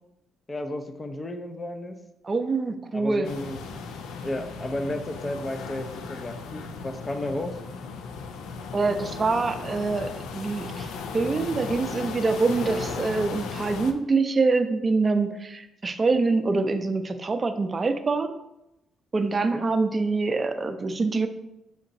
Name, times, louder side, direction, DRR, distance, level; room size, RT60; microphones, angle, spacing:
voice 1, 0.5-2.0 2.9-3.8 4.2-7.6 19.5-19.7, left 1 dB, 30° left, 7 dB, 0.5 m, -33 dB
voice 2, 2.2-3.3 8.7-18.3 19.1-21.3, right 3 dB, 35° right, 8 dB, 0.5 m, -25 dB
sound 1, 3.2-13.9, left 5 dB, 75° left, 0.4 m, -36 dB
6.4 x 2.9 x 2.6 m, 0.89 s
hypercardioid pair, 55°, 0 cm